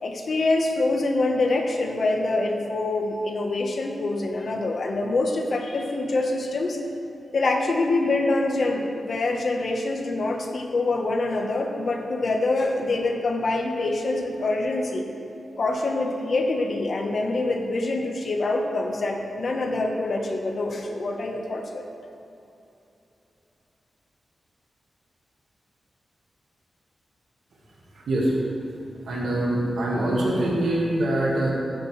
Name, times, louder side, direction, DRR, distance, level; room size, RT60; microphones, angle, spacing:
voice 1, 0.0-6.8 7.3-15.1 15.6-21.9, left 2 dB, 50° left, 2 dB, 1.2 m, -25 dB
voice 2, 27.9-28.3 29.1-31.5, right 1 dB, 90° right, -4 dB, 2.0 m, -24 dB
15.0 x 8.9 x 3.3 m, 2.9 s
wide cardioid pair, 150°, 0 cm